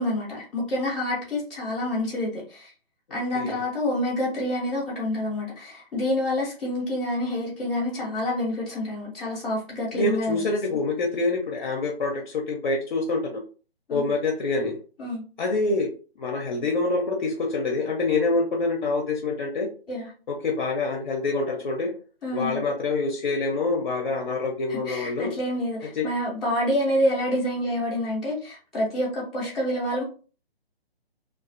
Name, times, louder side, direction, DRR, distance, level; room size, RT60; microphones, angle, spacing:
voice 1, 0.0-2.7 3.1-10.4 10.7-10.8 13.9-14.1 15.0-15.2 19.9-20.1 22.2-22.6 24.7-30.0, left 1 dB, ahead, -11 dB, 0.5 m, -27 dB
voice 2, 9.9-13.4 13.9-14.8 15.4-15.9 16.2-19.7 20.3-22.0 22.3-25.3 26.0-26.1, left 3 dB, 50° left, 1 dB, 0.5 m, -26 dB
2.3 x 2.3 x 2.4 m, 0.36 s
hypercardioid pair, 150°, 31 cm